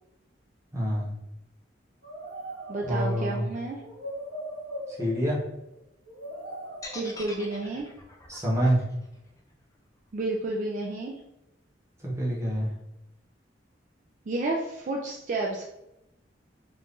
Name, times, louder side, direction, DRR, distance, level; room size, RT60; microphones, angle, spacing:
voice 1, 0.7-1.1 2.8-3.5 4.9-5.4 8.3-8.8 12.0-12.7, equal, 15° right, -4 dB, 0.9 m, -26 dB
sound 1, 2.0-3.2 3.8-5.5 6.1-7.3 8.7-8.8, right 1 dB, 65° right, 1.0 m, -40 dB
voice 2, 2.7-3.8 6.9-7.9 10.1-11.1 14.3-15.6, right 2 dB, 45° right, 0 dB, 0.4 m, -31 dB
sound 2, 6.8-10.9, left 2 dB, 20° left, 0.5 m, -44 dB
2.9 x 2.6 x 3.5 m, 0.90 s
head